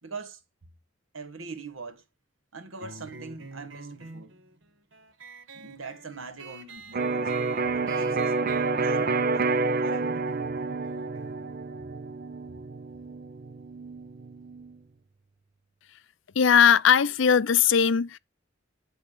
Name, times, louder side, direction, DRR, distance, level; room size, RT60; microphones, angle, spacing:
voice 1, 0.0-0.4 1.1-2.0 2.5-4.3 5.5-7.3 7.7-8.4 8.8-9.4 9.8-10.2 12.5-12.6, right 4 dB, 90° right, 1.6 m, -42 dB
sound 1, 2.8-13.9, right 3 dB, 65° right, 1.2 m, -48 dB
Electric guitar, 6.9-14.7, right 3 dB, 45° right, 0.8 m, -29 dB
voice 2, 16.4-18.2, left 7 dB, 65° left, 0.5 m, -19 dB
10.5 x 3.5 x 6.6 m
head